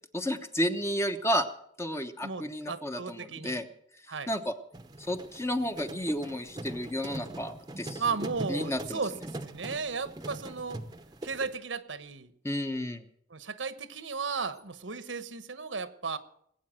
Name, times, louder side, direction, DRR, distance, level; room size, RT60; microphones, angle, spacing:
voice 1, 0.1-1.5 1.8-3.7 4.3-4.6 5.1-8.0 8.5-9.0 12.4-13.0, equal, 15° left, 7 dB, 1.0 m, -31 dB
voice 2, 2.2-3.6 4.1-4.3 8.0-9.1 9.5-10.8 11.2-12.3 13.3-16.2, right 5 dB, 80° right, 12 dB, 1.1 m, -35 dB
sound 1, 4.7-11.5, right 1 dB, 20° right, 0.9 m, -42 dB
20.0 x 8.7 x 7.6 m, 0.69 s
head